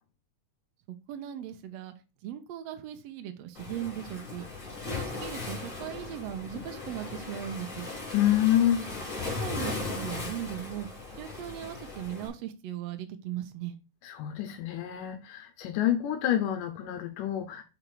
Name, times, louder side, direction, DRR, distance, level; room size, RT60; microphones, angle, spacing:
voice 1, 0.9-1.9 2.2-4.5 4.9-7.9 9.4-10.9 11.1-13.8, right 11 dB, 85° right, 1.4 m, -38 dB
Waves surf, 3.5-12.3, left 3 dB, 25° left, 2.2 m, -38 dB
voice 2, 8.1-8.9 14.1-17.6, left 11 dB, 85° left, 2.3 m, -27 dB
6.2 x 3.9 x 4.4 m
omnidirectional pair, 3.7 m